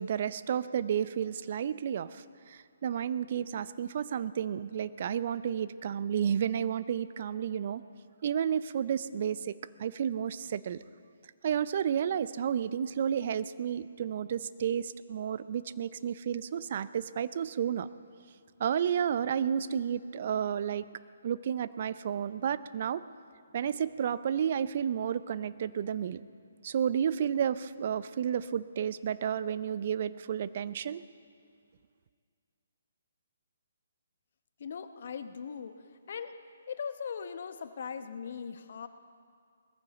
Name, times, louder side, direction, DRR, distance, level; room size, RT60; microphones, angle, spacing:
voice 1, 0.0-2.1 2.5-7.8 8.2-9.5 9.8-10.8 11.4-17.9 18.6-20.8 21.2-23.0 23.5-26.2 26.6-31.0, right 8 dB, 45° right, 15 dB, 0.5 m, -31 dB
voice 2, 34.6-35.7 36.1-36.4 36.7-38.9, left 6 dB, 55° left, 10 dB, 0.9 m, -39 dB
20.5 x 14.5 x 4.1 m, 2.2 s
figure-of-eight pair, 140°, 0 cm